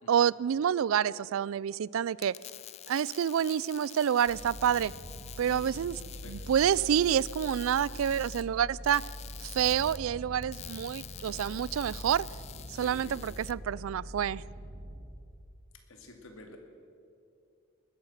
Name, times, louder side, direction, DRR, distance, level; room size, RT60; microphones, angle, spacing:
voice 1, 0.1-2.3 2.9-4.9 5.4-6.0 6.3-9.0 9.4-12.3 12.8-14.4, right 9 dB, 80° right, 22 dB, 0.3 m, -28 dB
sound 1, 2.1-13.5, left 12 dB, 30° left, 0.3 m, -48 dB
sound 2, 4.3-15.0, equal, 55° right, 2.2 m, -44 dB
voice 2, 5.5-5.9 6.2-6.4 11.2-11.6 12.0-12.1 12.7-13.2 15.9-16.6, left 2 dB, 80° left, 3 dB, 2.4 m, -51 dB
20.0 x 9.7 x 7.3 m, 2.4 s
head